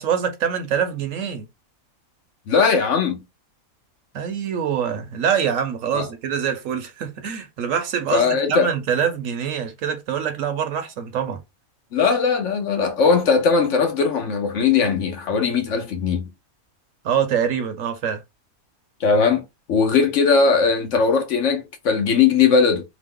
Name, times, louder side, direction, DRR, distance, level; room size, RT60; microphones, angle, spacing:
voice 1, 0.0-1.5 4.1-11.4 17.0-18.2, right 8 dB, 70° right, 0.9 m, -24 dB
voice 2, 2.5-3.2 5.9-6.1 8.1-8.7 11.9-16.3 19.0-19.4 19.7-22.8, left 5 dB, 65° left, 0.9 m, -19 dB
2.9 x 2.0 x 3.6 m
omnidirectional pair, 1.5 m